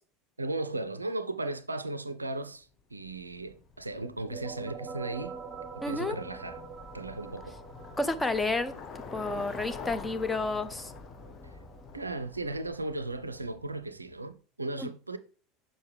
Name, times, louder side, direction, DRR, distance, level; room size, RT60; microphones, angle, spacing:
voice 1, 0.4-5.4 5.8-6.6 6.9-7.6 11.9-15.2, right 2 dB, 85° right, 0.4 m, -36 dB
Bicycle, 3.0-13.9, left 5 dB, 35° left, 1.1 m, -47 dB
sound 1, 4.0-13.4, right 6 dB, 25° right, 1.0 m, -46 dB
voice 2, 5.8-6.2 8.0-8.7 9.1-10.9 14.8-14.9, left 3 dB, 15° left, 0.8 m, -30 dB
6.6 x 5.6 x 3.4 m
figure-of-eight pair, 75°, 0 cm